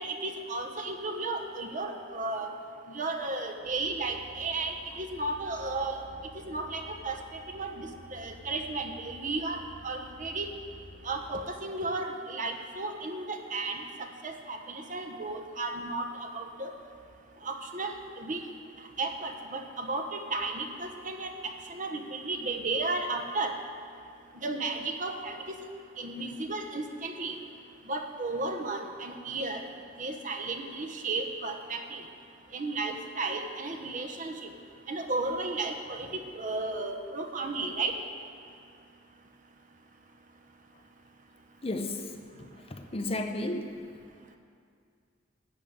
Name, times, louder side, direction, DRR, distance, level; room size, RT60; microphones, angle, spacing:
voice 1, 0.0-2.5 2.9-6.0 6.3-10.5 11.0-16.7 17.4-18.4 19.0-23.5 24.4-25.4 26.0-27.3 27.9-29.7 30.0-32.0 32.5-34.5 34.9-38.0, right 3 dB, 40° right, 5 dB, 1.0 m, -34 dB
sound 1, 3.6-11.3, equal, 60° left, 1.3 m, -51 dB
voice 2, 41.6-42.2 42.7-43.7, left 1 dB, 30° left, 6 dB, 0.7 m, -33 dB
12.5 x 6.7 x 8.7 m, 2.3 s
head